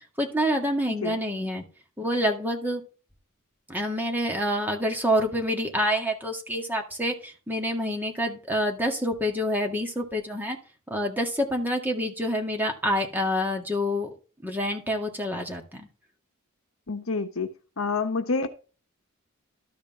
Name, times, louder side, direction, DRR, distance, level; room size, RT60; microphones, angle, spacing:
voice 1, 0.2-1.6 2.0-2.8 3.7-10.6 10.9-14.1 14.4-15.9, equal, 10° right, 2 dB, 1.8 m, -27 dB
voice 2, 16.9-17.5 17.8-18.5, left 4 dB, 65° left, 8 dB, 1.0 m, -27 dB
12.5 x 5.1 x 3.7 m, 0.35 s
head